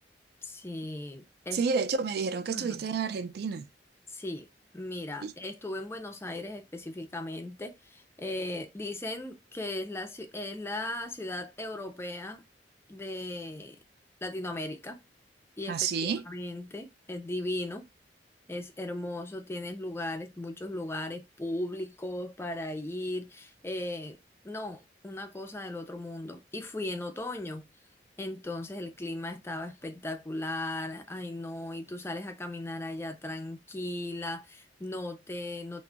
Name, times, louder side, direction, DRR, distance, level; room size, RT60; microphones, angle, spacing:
voice 1, 0.4-1.7 2.5-2.9 4.1-4.5 4.7-12.4 12.9-13.8 14.2-15.0 15.6-17.9 18.5-24.2 24.4-27.7 28.2-35.8, left 1 dB, 15° left, 0.4 m, -37 dB
voice 2, 1.5-3.7 5.2-5.3 15.7-16.2, right 5 dB, 60° right, 0.3 m, -30 dB
2.3 x 2.0 x 3.7 m
head